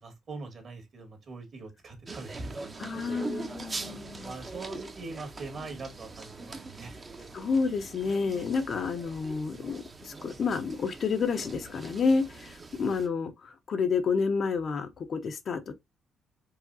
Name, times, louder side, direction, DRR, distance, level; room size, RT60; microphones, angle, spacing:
voice 1, 0.0-3.2 4.2-7.0, right 3 dB, 55° right, 1.9 m, -42 dB
sound 1, 2.1-13.1, right 3 dB, 30° right, 0.8 m, -42 dB
voice 2, 2.8-4.3 7.3-15.7, left 5 dB, 55° left, 0.7 m, -30 dB
4.8 x 2.8 x 2.7 m
cardioid pair, 90°, 0 cm